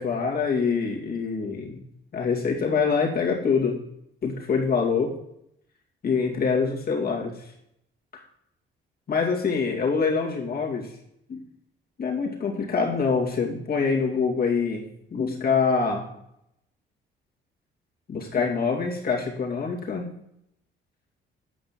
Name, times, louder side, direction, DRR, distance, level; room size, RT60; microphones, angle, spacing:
voice 1, 0.0-1.8 2.1-3.8 4.2-5.2 6.0-7.5 8.1-8.2 9.1-10.9 11.3-11.4 12.0-14.9 15.1-16.0 18.1-20.1, left 5 dB, 50° left, -1 dB, 2.6 m, -25 dB
8.6 x 5.3 x 7.4 m, 0.76 s
cardioid pair, 90°, 20 cm